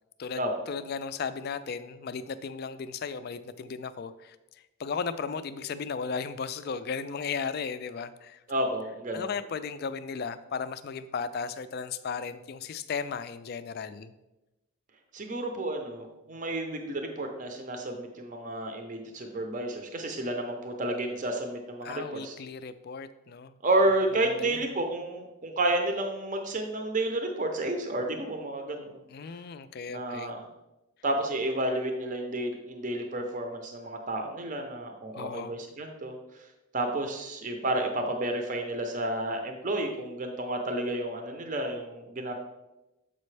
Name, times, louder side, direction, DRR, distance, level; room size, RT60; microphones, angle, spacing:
voice 1, 0.2-4.4 4.8-8.4 9.1-14.1 21.8-23.5 23.9-24.0 24.2-24.7 29.1-30.4 35.1-35.6, left 5 dB, 45° left, 13 dB, 0.3 m, -35 dB
voice 2, 8.5-9.3 15.1-22.3 23.6-29.0 29.9-30.5 31.0-36.2 36.7-42.3, right 1 dB, 35° right, 4 dB, 0.6 m, -31 dB
7.4 x 5.2 x 3.2 m, 0.98 s
head